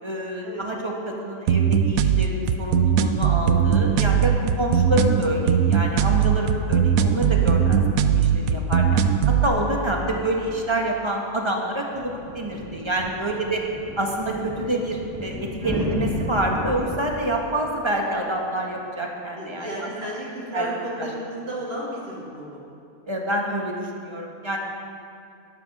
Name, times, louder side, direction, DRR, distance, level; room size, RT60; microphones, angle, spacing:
voice 1, 0.0-9.0 9.3-13.6 14.0-19.9 20.5-20.7 21.0-21.1 23.1-24.6, right 1 dB, 20° right, 0 dB, 1.4 m, -27 dB
sound 1, 1.5-9.5, right 8 dB, 80° right, 1.0 m, -19 dB
sound 2, 11.9-17.0, equal, ahead, 1.3 m, -32 dB
voice 2, 19.4-22.6, equal, 45° right, -6 dB, 3.1 m, -34 dB
12.0 x 10.0 x 6.1 m, 2.5 s
omnidirectional pair, 1.5 m